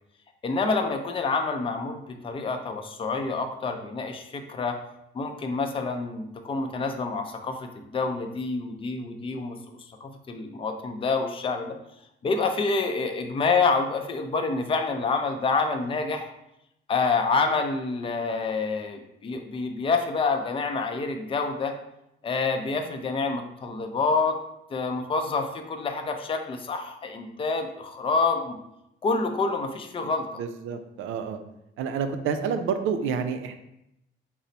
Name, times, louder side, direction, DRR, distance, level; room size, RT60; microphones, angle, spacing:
voice 1, 0.4-4.8 5.1-9.6 10.0-11.7 12.2-16.3 16.9-21.7 22.2-24.4 24.7-28.6 29.0-30.3, left 4 dB, 25° left, 5 dB, 0.4 m, -27 dB
voice 2, 30.4-31.4 31.8-33.6, right 6 dB, 80° right, 8 dB, 0.4 m, -29 dB
3.9 x 2.0 x 4.2 m, 0.83 s
cardioid pair, 90°, 20 cm